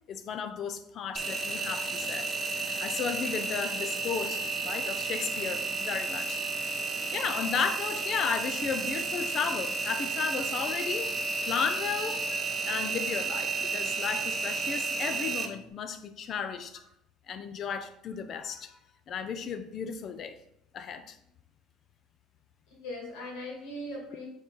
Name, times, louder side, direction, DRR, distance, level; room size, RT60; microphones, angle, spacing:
voice 1, 0.1-2.3 2.6-6.7 7.1-11.1 11.4-12.2 12.7-16.8 17.3-18.8 19.1-20.4 20.7-21.2, left 6 dB, 50° left, 10 dB, 0.4 m, -34 dB
Engine, 1.2-15.5, right 4 dB, 35° right, 0.6 m, -32 dB
voice 2, 22.7-24.3, left 1 dB, 85° left, -2 dB, 1.7 m, -40 dB
4.0 x 3.1 x 3.7 m, 0.75 s
supercardioid pair, 105°, 0 cm